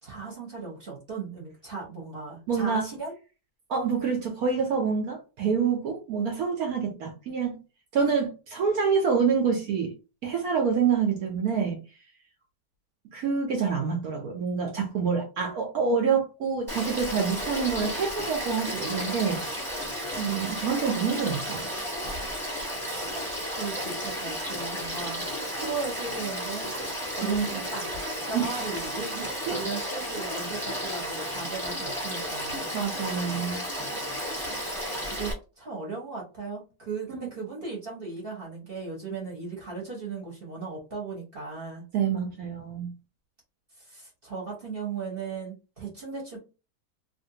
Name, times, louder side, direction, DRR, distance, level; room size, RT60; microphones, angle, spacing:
voice 1, 0.0-3.1 22.8-25.2 25.5-26.7 27.2-32.7 34.5-41.8 43.8-46.4, right 4 dB, 40° right, 1.1 m, -37 dB
voice 2, 2.5-2.9 3.7-7.6 7.9-9.9 10.2-11.8 13.1-19.6 20.2-21.7 27.2-27.6 28.3-28.6 29.5-29.6 32.7-33.6 37.1-37.3 41.9-42.9, right 6 dB, 65° right, 1.1 m, -27 dB
Frog / Stream, 16.7-35.3, equal, ahead, 1.2 m, -33 dB
3.1 x 2.5 x 2.7 m
omnidirectional pair, 1.8 m